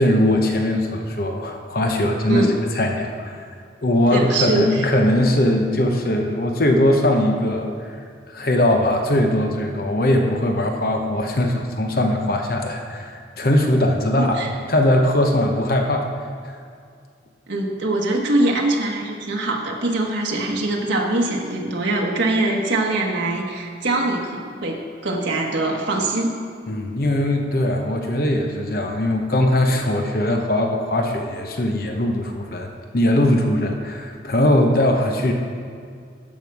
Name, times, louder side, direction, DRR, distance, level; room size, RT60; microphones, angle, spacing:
voice 1, 0.0-2.5 2.7-3.4 3.8-8.0 8.3-16.1 16.4-16.5 26.7-32.7 32.9-35.3, left 1 dB, 50° left, 3 dB, 0.9 m, -20 dB
voice 2, 4.1-4.9 14.2-14.5 17.5-26.4, right 2 dB, 75° right, -1 dB, 1.3 m, -23 dB
12.0 x 7.6 x 4.8 m, 2.2 s
head